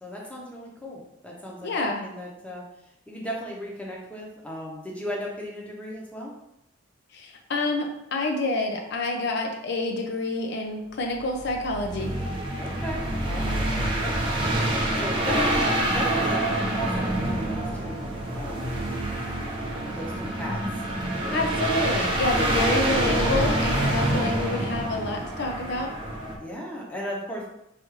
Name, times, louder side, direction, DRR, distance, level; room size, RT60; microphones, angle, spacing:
voice 1, 0.0-1.7 2.0-2.6 3.1-6.3 12.6-14.2 15.0-18.1 18.3-18.7 20.0-20.6 21.0-21.4 22.3-22.7 23.8-24.2 26.4-27.5, equal, 5° left, -3 dB, 0.8 m, -36 dB
voice 2, 1.6-2.1 7.1-12.1 21.3-25.9, left 2 dB, 55° left, 3 dB, 0.5 m, -28 dB
sound 1, 11.2-26.4, right 1 dB, 25° right, 0.6 m, -26 dB
4.8 x 2.6 x 3.1 m, 0.83 s
head